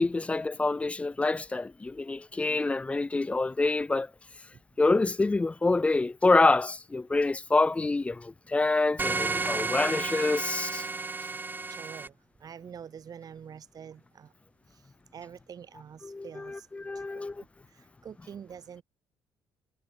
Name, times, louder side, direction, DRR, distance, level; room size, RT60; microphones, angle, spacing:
voice 1, 0.0-4.1 4.8-10.9 16.0-17.3, left 3 dB, 15° left, 0.3 m, -26 dB
sound 1, 9.0-12.1, right 3 dB, 20° right, 1.3 m, -32 dB
voice 2, 11.7-12.1 12.4-14.3 15.1-16.7 17.1-17.5 18.0-18.8, right 8 dB, 45° right, 3.8 m, -46 dB
cardioid pair, 90°, 9 cm